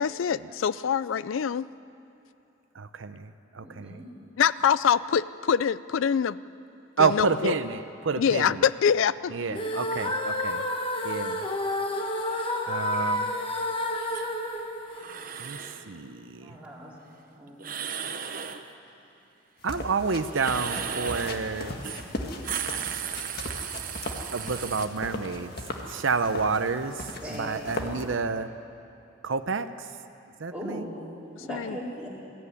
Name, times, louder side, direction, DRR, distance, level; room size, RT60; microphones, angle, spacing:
voice 1, 0.0-1.7 4.4-6.4 7.0-7.5 8.2-9.4 31.4-31.8, left 7 dB, 75° left, 17 dB, 0.4 m, -25 dB
voice 2, 2.7-4.0 7.0-8.6 9.3-10.6 11.0-11.5 12.7-13.3 15.4-16.6 19.6-21.8 24.3-25.5 25.8-28.5 29.2-29.9 30.4-30.9, right 4 dB, 70° right, 10 dB, 0.7 m, -29 dB
voice 3, 3.6-4.0 12.2-12.4 12.9-13.1 15.8-15.9 16.4-17.0 17.4-17.7 27.2-27.8 30.5-30.9 31.4-32.1, equal, 5° right, -6 dB, 4.1 m, -39 dB
sound 1, 9.5-15.7, left 1 dB, 25° left, 1.4 m, -30 dB
sound 2, 13.9-14.3 14.9-15.8 17.6-18.6 20.3-21.4 21.8-22.0 22.3-24.8, right 8 dB, 45° right, 1.0 m, -35 dB
sound 3, 19.6-28.1, left 1 dB, 50° left, 1.8 m, -38 dB
21.0 x 14.0 x 9.9 m, 2.7 s
head